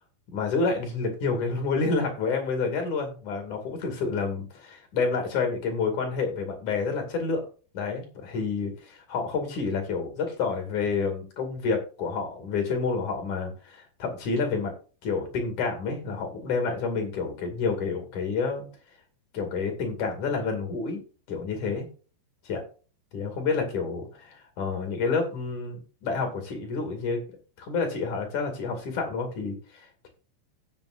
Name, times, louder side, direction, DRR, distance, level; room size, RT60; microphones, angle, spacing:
voice 1, 0.3-7.5 7.7-14.7 15.0-18.6 19.3-21.0 21.3-21.9 22.4-22.6 23.1-27.2 27.6-30.1, left 4 dB, 50° left, 4 dB, 3.4 m, -29 dB
16.5 x 7.2 x 2.5 m, 0.37 s
omnidirectional pair, 4.9 m